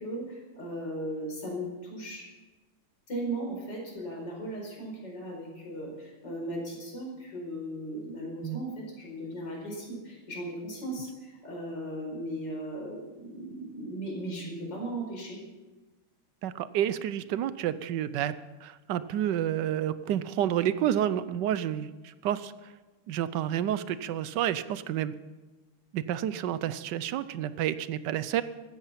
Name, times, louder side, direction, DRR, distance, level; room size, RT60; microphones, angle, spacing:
voice 1, 0.0-2.3 3.1-15.4, right 1 dB, 55° left, -1 dB, 5.3 m, -37 dB
voice 2, 16.4-18.4 18.6-22.5 23.1-25.1 25.9-28.4, right 11 dB, 70° right, 15 dB, 1.1 m, -29 dB
15.5 x 13.0 x 5.8 m, 1.2 s
omnidirectional pair, 2.3 m